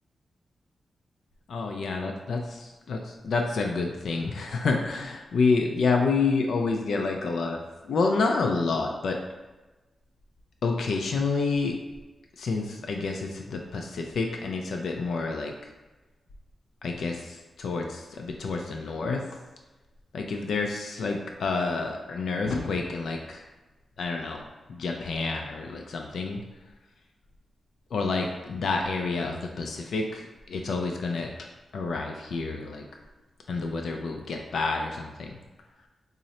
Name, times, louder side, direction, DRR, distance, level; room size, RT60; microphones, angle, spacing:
voice 1, 1.5-9.2 10.6-11.8 12.4-15.5 16.8-19.2 20.1-23.4 24.0-24.4 24.7-26.4 27.9-31.3 31.7-32.8 33.5-35.4, left 4 dB, 85° left, 2 dB, 0.3 m, -28 dB
3.7 x 2.0 x 4.1 m, 1.1 s
wide cardioid pair, 165°, 0 cm